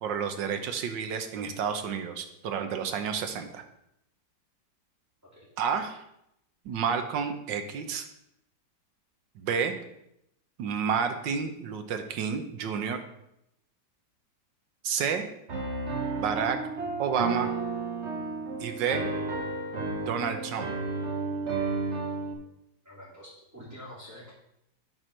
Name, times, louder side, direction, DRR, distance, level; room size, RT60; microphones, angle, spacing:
voice 1, 0.0-3.6 5.6-6.0 6.6-8.1 9.4-9.7 10.6-13.0 14.8-15.3 16.2-16.6 17.0-17.5 18.6-19.0 20.0-20.7, right 6 dB, 80° right, 7 dB, 1.6 m, -30 dB
Piano, 15.5-22.3, right 3 dB, 40° right, 1.4 m, -32 dB
voice 2, 22.8-24.3, equal, 10° right, -10 dB, 2.6 m, -47 dB
8.9 x 4.5 x 6.5 m, 0.79 s
omnidirectional pair, 1.9 m